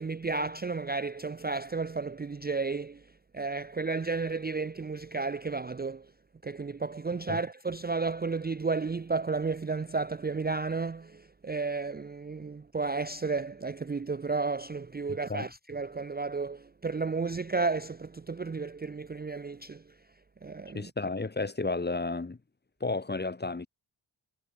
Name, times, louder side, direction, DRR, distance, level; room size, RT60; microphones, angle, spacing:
voice 1, 0.0-3.1 3.3-6.1 6.4-20.0 20.4-20.9, right 4 dB, 20° right, 0.5 m, -32 dB
voice 2, 20.7-22.4 22.8-23.7, left 3 dB, 20° left, 0.9 m, -32 dB
cardioid pair, 50°, 46 cm